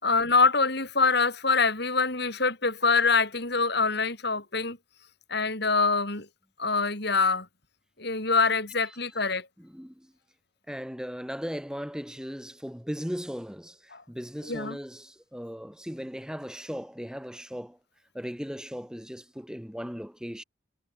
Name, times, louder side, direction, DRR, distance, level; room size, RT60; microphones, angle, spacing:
voice 1, 0.0-4.8 5.3-6.3 6.6-7.5 8.0-9.5 13.9-14.0 14.5-14.8, left 4 dB, 55° left, 4.7 m, -25 dB
voice 2, 9.6-10.1 10.7-17.8 18.1-20.4, equal, 5° right, 4.3 m, -37 dB
head